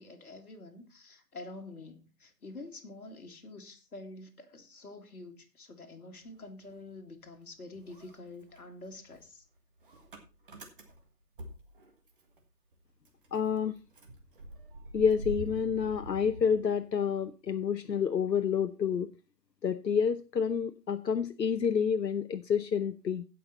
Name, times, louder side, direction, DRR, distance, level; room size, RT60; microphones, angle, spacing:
voice 1, 0.0-9.4, left 2 dB, 60° left, 2.3 m, -47 dB
Motor vehicle (road) / Engine starting, 6.2-7.4 7.7-12.4 12.7-12.8 13.0-17.2, right 1 dB, 30° right, 1.7 m, -45 dB
voice 2, 13.3-13.8 14.9-19.1 19.6-23.2, left 7 dB, 85° left, 0.9 m, -29 dB
16.0 x 5.8 x 4.1 m
figure-of-eight pair, 160°, 49 cm